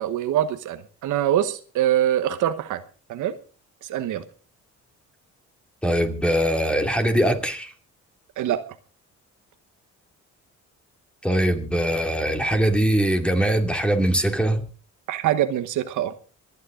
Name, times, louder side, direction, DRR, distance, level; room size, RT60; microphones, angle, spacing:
voice 1, 0.0-2.8 3.1-3.3 3.8-4.2 8.4-8.6 15.1-16.1, right 11 dB, 80° right, 1.2 m, -24 dB
voice 2, 5.8-7.7 11.2-14.7, right 1 dB, 5° left, 2.4 m, -22 dB
26.0 x 9.6 x 3.8 m
cardioid pair, 90°, 30 cm